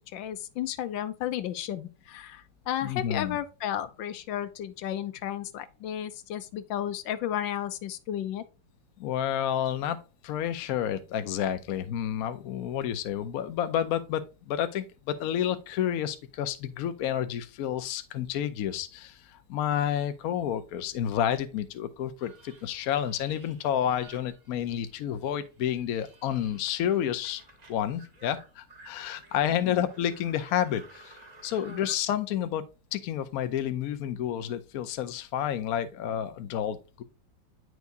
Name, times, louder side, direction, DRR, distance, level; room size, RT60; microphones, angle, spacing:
voice 1, 0.0-8.4 29.6-29.8 31.7-31.9, left 11 dB, 80° left, 1.4 m, -33 dB
voice 2, 2.8-3.4 9.0-27.4 27.7-32.6 32.9-37.0, left 10 dB, 65° left, 0.9 m, -30 dB
sound 1, 22.2-25.0 25.2-32.0, right 3 dB, 30° right, 0.8 m, -54 dB
9.3 x 4.7 x 2.6 m
omnidirectional pair, 2.1 m